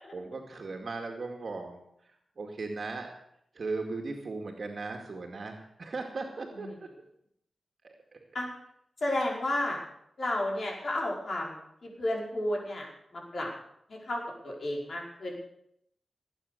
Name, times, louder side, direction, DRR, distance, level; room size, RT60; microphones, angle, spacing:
voice 1, 0.1-1.8 2.4-3.1 3.5-5.5 5.8-6.7 7.8-8.2, right 3 dB, 60° right, 2 dB, 2.2 m, -37 dB
voice 2, 9.0-9.8 10.2-12.9 13.1-13.5 13.9-15.4, left 1 dB, 60° left, -2 dB, 5.1 m, -32 dB
18.5 x 9.0 x 6.8 m, 0.74 s
wide cardioid pair, 85°, 0 cm